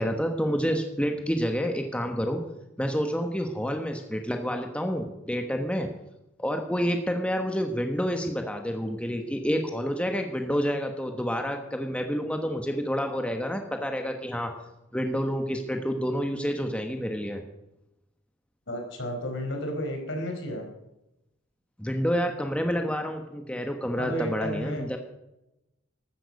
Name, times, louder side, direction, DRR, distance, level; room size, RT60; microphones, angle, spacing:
voice 1, 0.0-2.4 2.8-5.9 6.4-14.5 14.9-17.4 21.8-25.0, equal, 5° left, 4 dB, 1.2 m, -28 dB
voice 2, 18.7-20.7 24.0-24.9, equal, 65° left, 3 dB, 4.5 m, -32 dB
15.5 x 13.0 x 5.3 m, 0.90 s
head